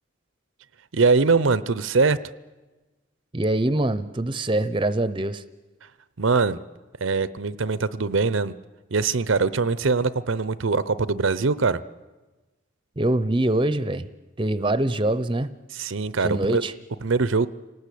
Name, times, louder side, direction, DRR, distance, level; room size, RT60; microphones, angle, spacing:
voice 1, 0.9-2.2 6.2-6.6 7.0-8.5 8.9-11.8 15.7-16.6 17.0-17.5, right 4 dB, 75° right, 16 dB, 0.7 m, -22 dB
voice 2, 3.3-5.4 13.0-14.1 14.4-15.5 16.2-16.7, right 1 dB, 25° right, 13 dB, 0.7 m, -24 dB
27.5 x 19.0 x 8.5 m, 1.2 s
head